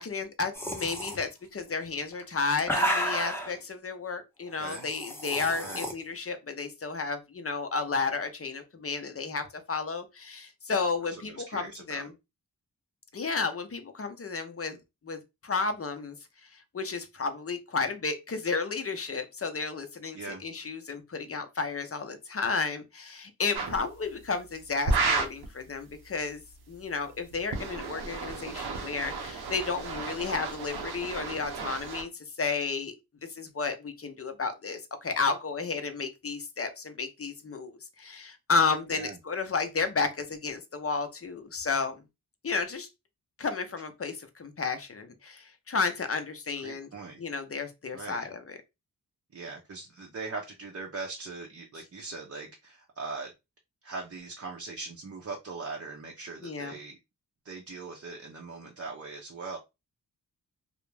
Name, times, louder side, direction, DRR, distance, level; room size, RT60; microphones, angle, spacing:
voice 1, 0.0-12.1 13.1-14.8 15.0-16.2 16.4-26.4 26.7-32.1 32.4-33.0 33.4-42.0 42.4-42.9 43.4-46.9 47.2-48.5 56.4-56.7, left 4 dB, 35° left, 0.6 m, -32 dB
sound 1, 0.5-1.2 2.1-3.5 4.6-5.9, equal, 5° left, 0.8 m, -31 dB
voice 2, 4.6-4.9 5.6-5.9 11.2-12.1 20.1-20.4 38.9-39.2 46.6-47.2 47.9-48.3 49.3-53.3 53.8-57.0 57.4-59.6, right 3 dB, 40° right, 0.6 m, -40 dB
sound 2, 23.5-23.8 24.8-25.5 27.3-32.0, right 3 dB, 80° right, 0.7 m, -32 dB
2.4 x 2.1 x 3.1 m
cardioid pair, 45°, 38 cm